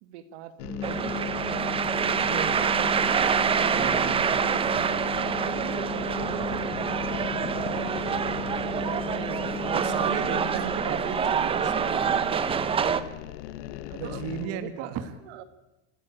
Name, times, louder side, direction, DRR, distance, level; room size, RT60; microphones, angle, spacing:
voice 1, 0.0-1.4 2.1-3.6 4.3-4.6 4.9-8.4 8.8-10.4 14.0-14.9 15.2-15.4, right 10 dB, 70° right, 11 dB, 2.0 m, -43 dB
sound 1, 0.6-14.5, left 14 dB, 85° left, 1.5 m, -40 dB
sound 2, 0.6-10.6, left 6 dB, 15° left, 5.1 m, -37 dB
sound 3, 0.8-13.0, right 7 dB, 15° right, 0.8 m, -26 dB
voice 2, 3.4-4.4 9.7-12.5 13.9-15.1, right 7 dB, 45° right, 10 dB, 1.9 m, -35 dB
29.5 x 15.5 x 8.8 m, 0.99 s
cardioid pair, 170°, 35 cm